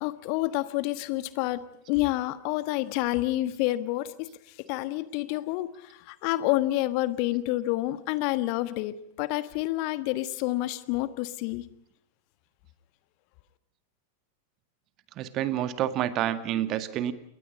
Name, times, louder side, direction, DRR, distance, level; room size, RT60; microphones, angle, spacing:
voice 1, 0.0-4.3 4.7-11.7, left 17 dB, 45° left, 14 dB, 1.3 m, -28 dB
voice 2, 15.2-17.1, right 11 dB, 35° right, 11 dB, 1.9 m, -28 dB
28.5 x 22.5 x 5.3 m, 0.76 s
figure-of-eight pair, 90°, 0 cm